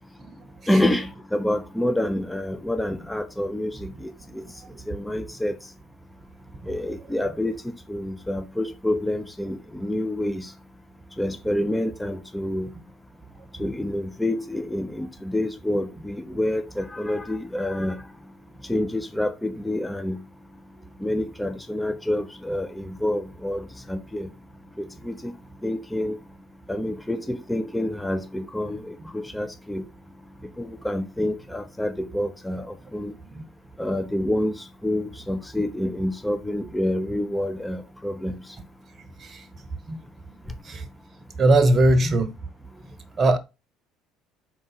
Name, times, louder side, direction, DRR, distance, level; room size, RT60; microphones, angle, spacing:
voice 1, 0.7-4.4 4.9-5.6 6.7-7.6 7.9-10.5 11.2-12.7 13.6-18.0 18.7-20.2 21.0-24.3 24.8-25.3 25.6-26.2 26.7-29.8 30.6-33.1 33.8-34.5 34.8-38.3, left 1 dB, 5° left, 0.9 m, -27 dB
voice 2, 41.4-42.3 43.2-43.4, right 2 dB, 40° right, 1.0 m, -18 dB
4.8 x 3.9 x 5.7 m
hypercardioid pair, 65°, 0 cm